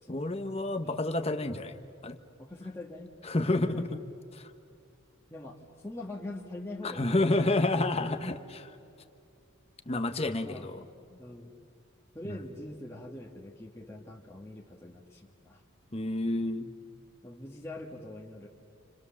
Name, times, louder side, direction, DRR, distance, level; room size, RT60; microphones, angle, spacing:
voice 1, 0.1-2.2 3.2-4.0 4.3-4.5 6.8-8.7 9.9-10.8 12.2-12.4 15.9-16.7, left 2 dB, 30° left, 8 dB, 1.1 m, -29 dB
voice 2, 2.4-3.1 3.5-3.9 5.3-7.4 10.4-11.6 12.1-15.6 17.2-18.5, left 1 dB, 10° left, -2 dB, 1.5 m, -43 dB
29.0 x 28.5 x 7.1 m, 2.5 s
head